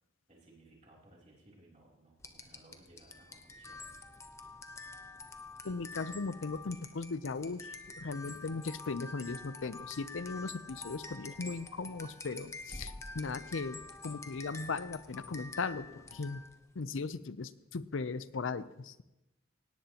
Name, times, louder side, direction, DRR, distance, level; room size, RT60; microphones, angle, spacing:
voice 1, 0.3-3.8, right 1 dB, 35° right, -3 dB, 3.2 m, -60 dB
sound 1, 2.2-16.7, left 3 dB, 15° left, 0.7 m, -47 dB
voice 2, 5.6-16.4 16.8-19.0, left 4 dB, 70° left, 15 dB, 0.6 m, -38 dB
18.0 x 17.0 x 2.9 m, 0.97 s
head